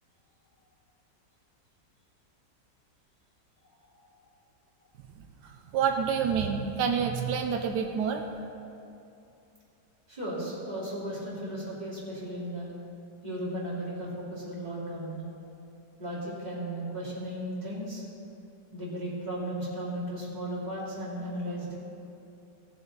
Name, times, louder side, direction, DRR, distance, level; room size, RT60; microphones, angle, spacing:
voice 1, 5.7-8.2, right 7 dB, 85° right, 4 dB, 1.3 m, -27 dB
voice 2, 10.1-12.7 13.2-15.2 16.0-18.0 18.7-21.8, right 1 dB, 25° right, -7 dB, 2.7 m, -35 dB
17.0 x 7.0 x 3.9 m, 2.7 s
omnidirectional pair, 1.8 m